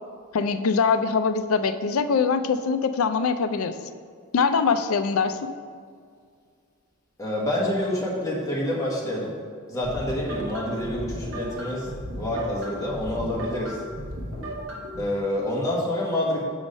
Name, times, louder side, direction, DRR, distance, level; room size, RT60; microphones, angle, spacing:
voice 1, 0.3-3.7 4.3-5.5, left 5 dB, 80° left, 10 dB, 0.4 m, -23 dB
voice 2, 7.2-9.3 9.7-11.9 12.2-13.8 15.0-16.5, left 1 dB, 15° left, -5 dB, 1.3 m, -27 dB
sound 1, 9.8-15.0, equal, 65° right, 1.4 m, -35 dB
6.4 x 4.8 x 5.2 m, 2.1 s
head